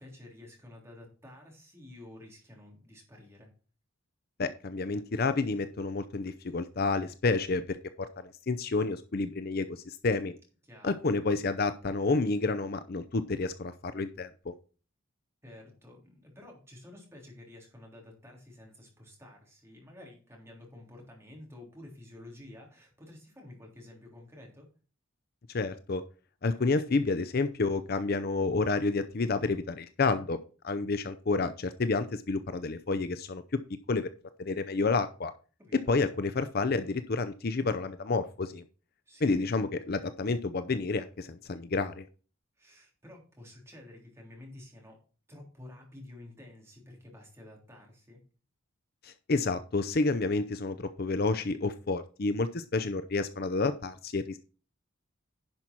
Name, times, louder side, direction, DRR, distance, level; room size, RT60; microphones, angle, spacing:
voice 1, 0.0-3.5 10.6-10.9 15.4-24.7 26.5-26.7 35.6-36.0 39.1-39.5 42.6-45.0 45.3-48.2, left 1 dB, 10° right, 0 dB, 3.4 m, -51 dB
voice 2, 4.4-10.4 10.8-14.5 25.5-26.0 26.4-30.4 30.6-34.1 34.4-35.3 35.7-38.6 39.2-42.1 49.0-54.4, left 3 dB, 45° left, 11 dB, 0.5 m, -30 dB
10.5 x 5.6 x 4.5 m, 0.37 s
head